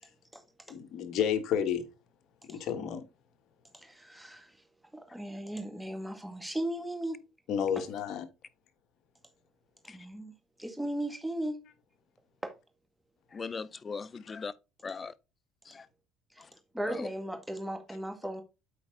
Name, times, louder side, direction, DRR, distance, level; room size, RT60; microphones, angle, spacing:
voice 1, 0.7-1.8 2.5-3.0 7.5-8.2, left 8 dB, 60° left, 1.4 m, -31 dB
voice 2, 3.8-4.6 5.1-7.2 9.8-10.3 10.6-11.6 12.4-12.5 16.7-18.4, right 1 dB, 5° right, 1.9 m, -36 dB
voice 3, 13.3-14.5 14.8-15.1 15.7-15.9 16.4-16.5 16.9-17.1, left 5 dB, 30° left, 0.6 m, -39 dB
8.4 x 4.4 x 3.8 m
supercardioid pair, 100°, 0 cm